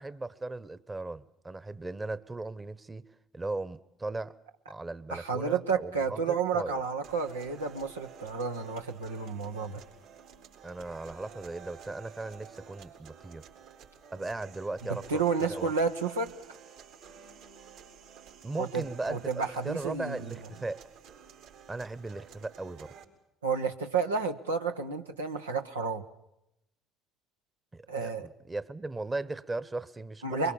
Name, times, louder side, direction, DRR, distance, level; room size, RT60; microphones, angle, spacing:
voice 1, 0.0-3.0 3.3-4.4 4.7-6.8 10.6-13.4 14.1-15.2 15.5-15.7 18.4-20.8 21.7-22.9 27.7-30.5, right 2 dB, 20° right, 16 dB, 1.2 m, -37 dB
voice 2, 5.1-9.8 15.1-16.3 18.6-18.8 19.1-20.3 23.4-26.0 27.9-28.3 30.2-30.5, right 5 dB, 90° right, 4 dB, 1.2 m, -31 dB
sound 1, 7.0-23.0, right 7 dB, 70° right, 4.1 m, -51 dB
23.5 x 22.5 x 7.2 m, 0.85 s
hypercardioid pair, 55°, 0 cm